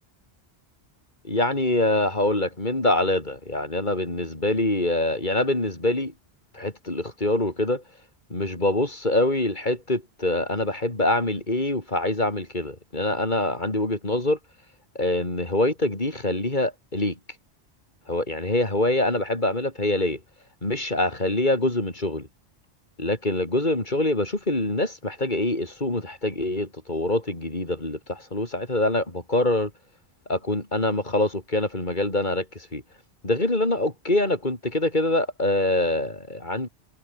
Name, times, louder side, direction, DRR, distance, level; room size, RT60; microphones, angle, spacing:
voice 1, 1.2-6.1 6.5-7.8 8.3-14.4 14.9-17.2 18.1-20.2 20.6-22.3 23.0-29.7 30.3-32.5 32.7-32.8 33.2-36.7, left 1 dB, 45° left, 4.2 m, -25 dB
omnidirectional pair, 1.1 m